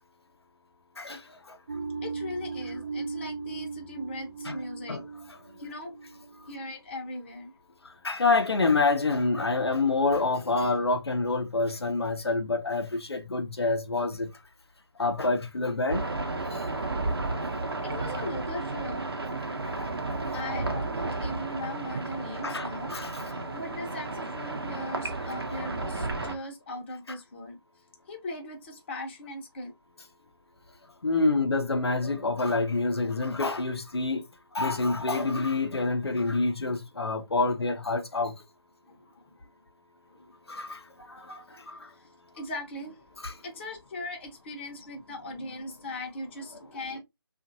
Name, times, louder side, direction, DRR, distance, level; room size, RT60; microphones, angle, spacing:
sound 1, 1.7-6.7, right 4 dB, 35° right, 0.4 m, -38 dB
voice 1, 2.0-5.0 5.6-5.9 6.5-7.5 17.8-19.1 20.3-23.0 23.2-27.6 28.1-29.7 38.8-39.3 40.1-40.3 41.5-42.1 42.3-47.0, left 1 dB, 25° left, 0.7 m, -39 dB
voice 2, 8.0-14.3 15.0-16.0 20.3-20.4 22.4-23.2 31.0-34.2 34.5-38.3 40.5-40.8 41.1-41.8 43.2-43.3, left 3 dB, 85° left, 0.7 m, -27 dB
sound 2, 15.9-26.4, right 2 dB, 70° right, 0.8 m, -33 dB
2.8 x 2.5 x 2.5 m
figure-of-eight pair, 155°, 13 cm